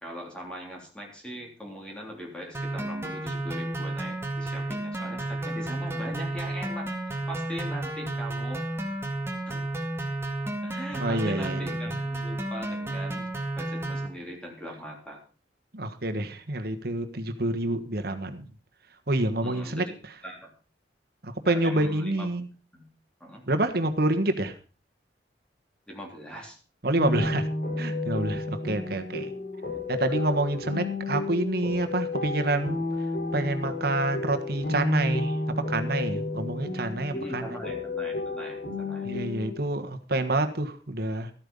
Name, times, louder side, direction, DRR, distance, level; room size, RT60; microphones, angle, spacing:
voice 1, 0.0-8.6 9.5-9.6 10.6-13.3 13.6-15.2 19.4-19.9 20.2-20.5 21.4-22.3 22.7-22.9 23.2-23.4 25.9-26.6 30.2-30.3 37.1-39.1, equal, 5° left, 0 dB, 3.3 m, -40 dB
sound 1, 2.5-14.1, right 1 dB, 15° right, 2.0 m, -32 dB
voice 2, 11.0-11.7 15.7-18.4 19.1-19.8 21.2-22.5 23.5-24.5 26.8-27.5 27.8-29.3 29.9-32.8 33.3-35.4 35.7-37.6 39.0-41.3, right 2 dB, 60° right, 7 dB, 1.5 m, -27 dB
sound 2, 26.9-39.5, left 2 dB, 55° left, 4.2 m, -31 dB
13.5 x 9.0 x 5.3 m, 0.36 s
head